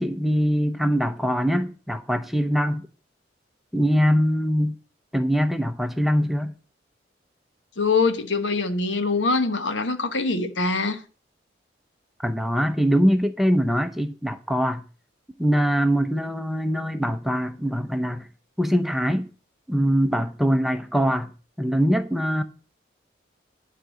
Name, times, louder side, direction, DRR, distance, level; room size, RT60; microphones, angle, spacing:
voice 1, 0.0-2.8 3.7-4.8 5.1-6.5 12.2-14.8 15.4-18.3 18.6-19.3 19.7-21.3 21.6-22.4, equal, ahead, 0.7 m, -23 dB
voice 2, 7.8-11.0, left 3 dB, 80° left, 1.2 m, -23 dB
11.0 x 4.9 x 7.6 m
head